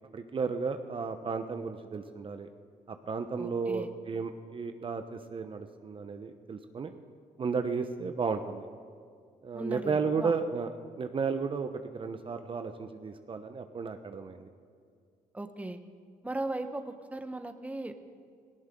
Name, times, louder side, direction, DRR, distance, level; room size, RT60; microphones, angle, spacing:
voice 1, 0.1-2.5 2.9-7.0 7.4-8.7 9.4-10.7 11.0-14.5, right 5 dB, 40° right, 8 dB, 0.9 m, -33 dB
voice 2, 3.4-3.9 9.5-10.4 15.3-15.8 16.2-17.9, right 2 dB, 10° right, 8 dB, 1.1 m, -37 dB
18.0 x 17.0 x 3.8 m, 2.1 s
cardioid pair, 75°, 13 cm